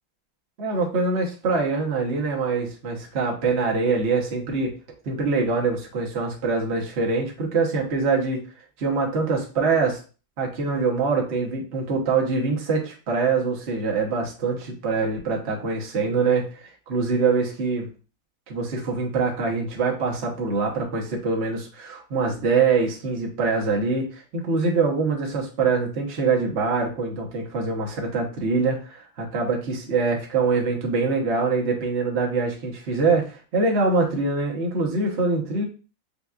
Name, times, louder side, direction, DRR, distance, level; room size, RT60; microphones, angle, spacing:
voice 1, 0.6-4.7 5.0-8.4 8.8-10.0 10.4-17.9 18.5-35.6, right 4 dB, 40° right, -1 dB, 1.0 m, -24 dB
6.9 x 2.5 x 2.4 m, 0.36 s
omnidirectional pair, 2.3 m